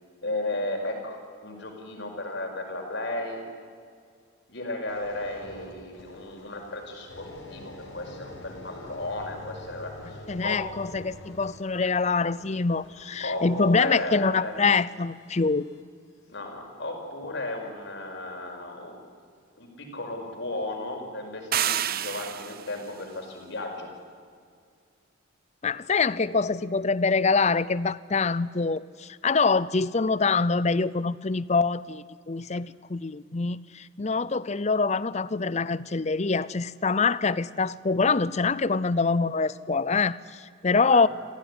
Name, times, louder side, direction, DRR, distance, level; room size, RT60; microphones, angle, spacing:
voice 1, 0.2-3.4 4.5-10.6 11.9-12.0 13.2-14.6 16.3-19.1 19.6-23.9 40.9-41.1, left 2 dB, 60° left, 3 dB, 5.4 m, -34 dB
sound 1, 4.9-15.8 16.4-16.6, left 1 dB, 80° left, 5.3 m, -47 dB
voice 2, 10.3-15.7 25.6-41.1, left 4 dB, 35° left, 18 dB, 0.6 m, -25 dB
sound 2, 21.5-22.8, right 10 dB, 45° right, 0.6 m, -28 dB
27.5 x 15.5 x 9.9 m, 2.1 s
head